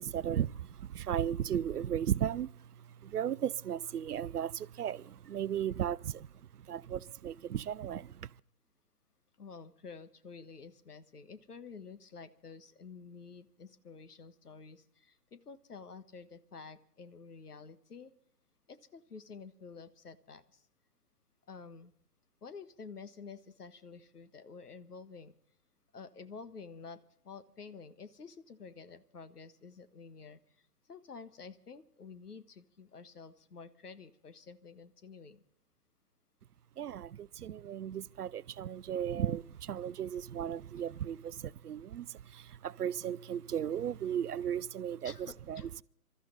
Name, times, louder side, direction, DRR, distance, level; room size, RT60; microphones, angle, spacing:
voice 1, 0.0-2.5 3.0-6.3 6.7-8.1 36.8-45.8, right 9 dB, 75° right, 0.6 m, -35 dB
voice 2, 9.4-18.1 18.7-20.6 21.5-21.9 22.4-25.3 25.9-27.0 27.2-30.4 30.9-35.4 45.0-45.7, left 5 dB, 75° left, 1.5 m, -50 dB
26.5 x 13.5 x 4.0 m
figure-of-eight pair, 130°, 46 cm